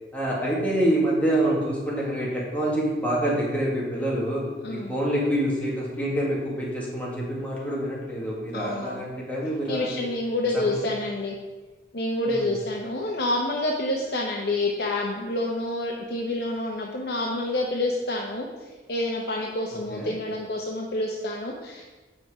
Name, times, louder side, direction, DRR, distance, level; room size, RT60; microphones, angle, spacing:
voice 1, 0.1-10.1 10.5-10.8 12.3-12.5 19.9-20.1, right 1 dB, 10° left, -5 dB, 1.8 m, -26 dB
voice 2, 4.6-4.9 8.5-9.0 9.7-11.3 11.9-18.5 18.9-21.8, left 1 dB, 60° left, -1 dB, 0.8 m, -28 dB
8.0 x 6.0 x 4.8 m, 1.2 s
head